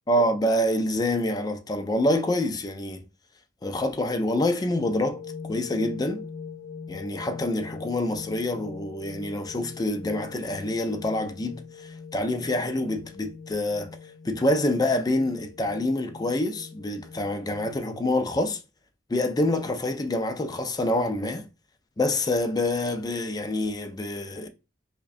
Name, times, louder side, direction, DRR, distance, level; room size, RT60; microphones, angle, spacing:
voice 1, 0.1-3.0 3.6-5.2 5.5-6.3 6.9-13.9 14.2-18.6 19.1-21.5 22.0-24.5, left 1 dB, 20° left, 0.4 m, -26 dB
sound 1, 5.1-17.9, left 5 dB, 80° left, 0.8 m, -42 dB
4.9 x 2.2 x 2.5 m
head